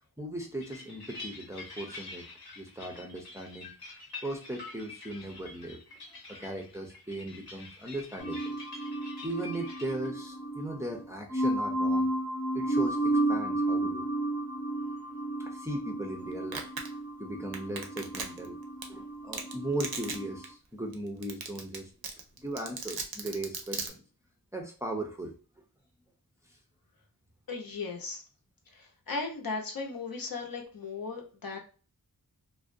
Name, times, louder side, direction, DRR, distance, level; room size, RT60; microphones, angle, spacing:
voice 1, 0.2-2.3 2.6-3.7 4.2-5.8 6.3-8.6 9.2-12.1 12.5-14.1 15.4-16.7 17.2-18.6 18.9-21.9 22.4-24.0 24.5-25.4, right 1 dB, 10° right, 1 dB, 0.4 m, -38 dB
sound 1, 0.6-10.1, left 3 dB, 90° left, 1.0 m, -47 dB
sound 2, 8.2-20.4, right 1 dB, 15° left, 0.7 m, -32 dB
Domestic sounds home sounds, 16.5-16.9 17.5-18.5 18.8-18.9 19.3-19.5 19.8-20.2 20.4-20.5 20.9-21.0 21.2-21.8 22.0-23.9, right 5 dB, 75° right, 0.6 m, -35 dB
voice 2, 27.5-28.2 28.8-31.6, left 4 dB, 65° left, 1 dB, 0.7 m, -37 dB
2.4 x 2.1 x 2.5 m, 0.37 s
wide cardioid pair, 80°, 37 cm